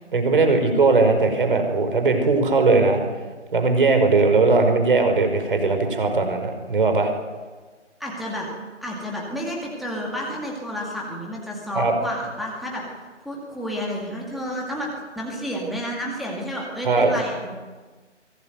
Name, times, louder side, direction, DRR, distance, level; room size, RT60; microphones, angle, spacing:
voice 1, 0.1-3.0 3.5-7.1 11.7-11.9 16.8-17.1, right 3 dB, 45° right, 6 dB, 5.5 m, -19 dB
voice 2, 8.0-8.5 8.8-12.8 13.2-14.9 15.2-17.5, equal, ahead, -4 dB, 2.2 m, -30 dB
23.0 x 18.5 x 9.4 m, 1.3 s
figure-of-eight pair, 150°, 37 cm